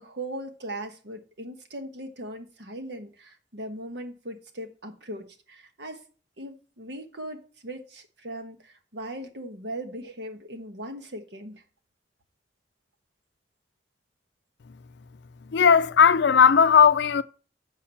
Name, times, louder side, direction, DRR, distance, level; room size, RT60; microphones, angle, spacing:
voice 1, 0.0-6.0 6.4-11.6, right 1 dB, 70° right, 1.3 m, -39 dB
voice 2, 15.5-17.2, left 7 dB, 70° left, 0.4 m, -17 dB
7.3 x 4.7 x 5.7 m
head